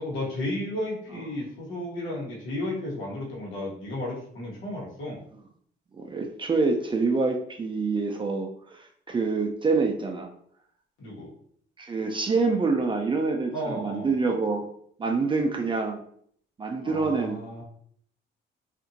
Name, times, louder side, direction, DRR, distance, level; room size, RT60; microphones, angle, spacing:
voice 1, 0.0-5.2 11.0-11.3 13.5-14.1 16.8-17.6, left 1 dB, 90° left, -4 dB, 1.1 m, -33 dB
voice 2, 5.9-10.3 11.8-14.7 15.0-16.0 16.6-17.6, right 4 dB, 25° right, 2 dB, 0.4 m, -26 dB
2.7 x 2.5 x 2.5 m, 0.63 s
cardioid pair, 90°, 20 cm